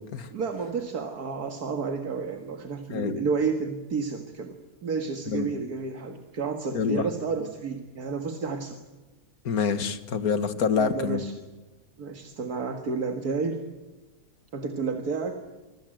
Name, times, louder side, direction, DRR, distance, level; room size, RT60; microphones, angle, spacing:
voice 1, 0.3-4.6 4.8-8.8 10.7-11.3 12.0-13.6 14.5-15.4, right 5 dB, 75° right, 5 dB, 2.3 m, -31 dB
voice 2, 6.7-7.1 9.5-11.2, left 6 dB, 70° left, 11 dB, 2.0 m, -26 dB
25.5 x 24.5 x 7.8 m, 1.2 s
omnidirectional pair, 1.6 m